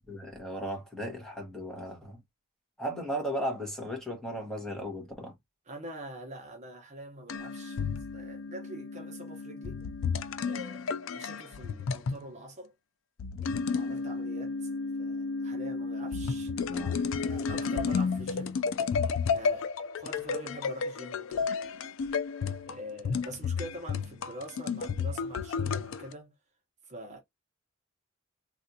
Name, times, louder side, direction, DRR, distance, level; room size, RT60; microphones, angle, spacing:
voice 1, 0.1-2.2 2.8-5.3 16.7-17.1, equal, 5° left, 1.1 m, -36 dB
voice 2, 5.7-7.8 8.1-9.8 10.4-12.7 13.7-14.7 15.0-16.5 16.9-18.6 19.3-19.7 19.9-21.5 22.7-26.3 26.9-27.2, right 1 dB, 35° right, 0.9 m, -44 dB
sound 1, 7.3-12.2 13.2-26.1, left 5 dB, 65° left, 0.4 m, -32 dB
3.4 x 2.5 x 2.7 m
head